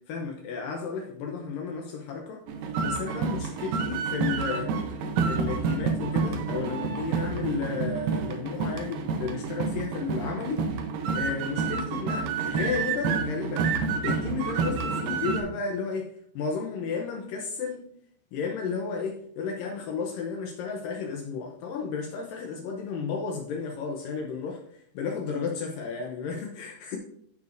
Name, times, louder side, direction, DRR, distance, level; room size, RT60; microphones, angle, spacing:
voice 1, 0.1-2.4 2.8-10.6 11.2-13.7 14.0-16.1 16.4-17.9 18.3-27.0, left 5 dB, 85° left, 1 dB, 1.9 m, -33 dB
sound 1, 2.5-15.4, right 5 dB, 80° right, 2.0 m, -29 dB
14.5 x 5.8 x 2.6 m, 0.68 s
omnidirectional pair, 5.1 m